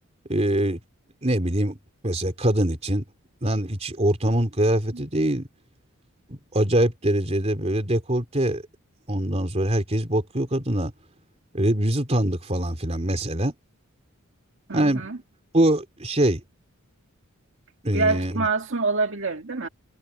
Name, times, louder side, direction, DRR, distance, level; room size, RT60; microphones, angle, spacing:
voice 1, 0.3-0.8 1.2-1.8 2.0-3.0 3.4-5.5 6.3-8.6 9.1-10.9 11.5-13.5 14.7-15.1 15.5-16.4 17.8-18.5, right 1 dB, 30° right, 3.3 m, -23 dB
voice 2, 14.7-15.2 17.9-19.7, right 3 dB, 60° right, 2.0 m, -26 dB
head